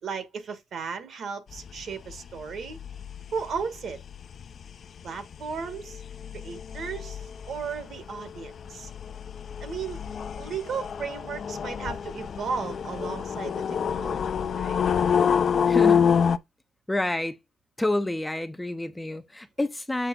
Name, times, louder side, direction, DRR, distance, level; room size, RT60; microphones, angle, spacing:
voice 1, 0.0-2.8 3.3-4.0 5.0-6.0 6.3-8.9 9.6-10.0 10.4-14.9, right 6 dB, 55° right, 1.6 m, -35 dB
sound 1, 1.5-16.4, left 7 dB, 45° left, 0.6 m, -28 dB
voice 2, 15.7-16.1 16.9-17.4 17.8-20.1, left 1 dB, 10° left, 0.6 m, -28 dB
7.5 x 3.4 x 5.2 m
cardioid pair, 135°, 0 cm